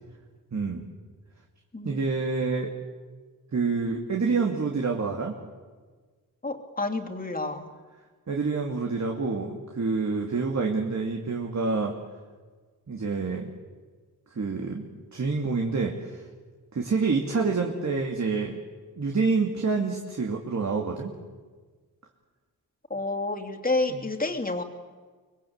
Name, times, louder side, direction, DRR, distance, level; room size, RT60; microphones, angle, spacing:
voice 1, 0.5-0.8 1.8-2.7 3.5-5.4 8.3-11.9 12.9-13.5 14.3-16.2 16.7-18.6 19.0-21.1 23.9-24.0, right 4 dB, 50° right, 1 dB, 2.6 m, -27 dB
voice 2, 1.7-2.1 6.4-7.7 22.9-24.6, left 2 dB, 25° left, 3 dB, 3.0 m, -29 dB
25.0 x 21.5 x 8.1 m, 1.4 s
cardioid pair, 75°, 36 cm